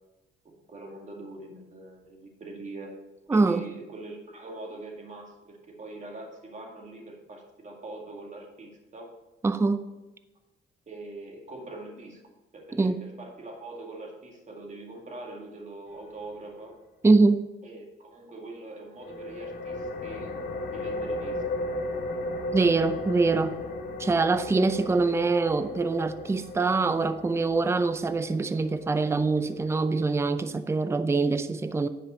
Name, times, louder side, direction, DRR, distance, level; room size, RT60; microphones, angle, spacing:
voice 1, 0.4-2.9 3.3-9.1 10.9-12.2 12.5-16.7 17.6-20.3 20.7-21.4 23.5-23.6 24.0-24.2, right 2 dB, 35° right, 2.1 m, -43 dB
voice 2, 3.3-3.6 9.4-9.8 12.7-13.0 17.0-17.4 22.5-23.6 24.0-31.9, right 3 dB, 15° right, 0.5 m, -24 dB
sound 1, 19.0-30.4, left 2 dB, 50° left, 1.4 m, -36 dB
9.9 x 5.2 x 5.6 m
cardioid pair, 90°, 20 cm